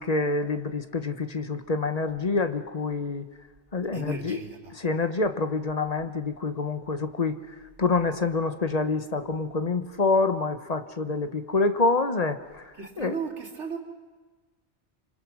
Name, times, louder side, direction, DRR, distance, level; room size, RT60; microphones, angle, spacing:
voice 1, 0.0-3.2 3.7-4.4 4.7-7.4 7.8-13.1, left 3 dB, 35° left, 9 dB, 1.1 m, -27 dB
voice 2, 3.9-4.8 12.8-13.8, right 5 dB, 80° right, 1 dB, 2.9 m, -35 dB
27.0 x 25.0 x 6.2 m, 1.4 s
omnidirectional pair, 1.2 m